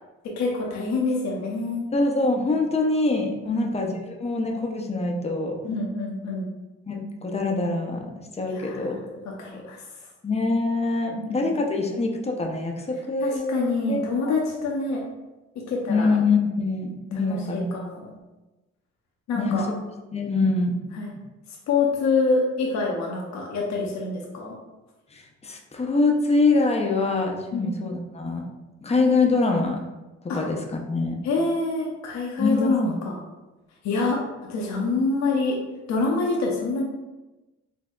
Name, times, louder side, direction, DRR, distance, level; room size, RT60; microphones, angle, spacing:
voice 1, 0.4-1.9 3.4-3.8 5.6-6.5 8.5-8.9 9.4-9.8 11.1-11.5 13.2-15.0 15.7-16.1 17.2-18.1 19.3-19.7 20.9-21.1 21.7-24.5 27.5-27.7 30.3-30.4 31.2-33.2 33.8-34.2 34.5-35.6 35.9-36.8, left 3 dB, 65° left, -1 dB, 0.7 m, -26 dB
voice 2, 1.9-5.6 6.9-9.2 10.2-14.0 15.9-17.7 19.4-19.7 20.1-20.8 25.1-28.4 28.8-29.8 30.3-31.2 32.4-33.0, left 3 dB, 20° left, 1 dB, 0.6 m, -24 dB
4.4 x 2.7 x 2.3 m, 1.1 s
cardioid pair, 90°, 30 cm